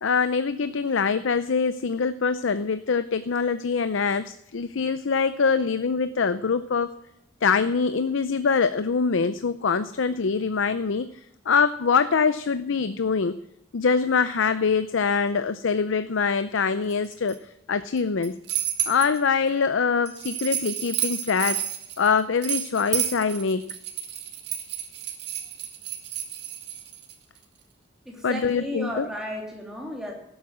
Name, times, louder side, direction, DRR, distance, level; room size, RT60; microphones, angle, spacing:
voice 1, 0.0-6.9 7.4-11.1 11.5-13.3 13.7-17.4 17.7-18.3 18.9-21.6 22.0-23.7 28.2-29.1, left 5 dB, 85° left, 13 dB, 0.6 m, -24 dB
sound 1, 16.9-17.4 18.0-19.2 20.1-27.1, right 11 dB, 60° right, 1.8 m, -31 dB
voice 2, 28.0-30.1, equal, ahead, -1 dB, 2.9 m, -34 dB
12.5 x 8.2 x 7.4 m, 0.80 s
head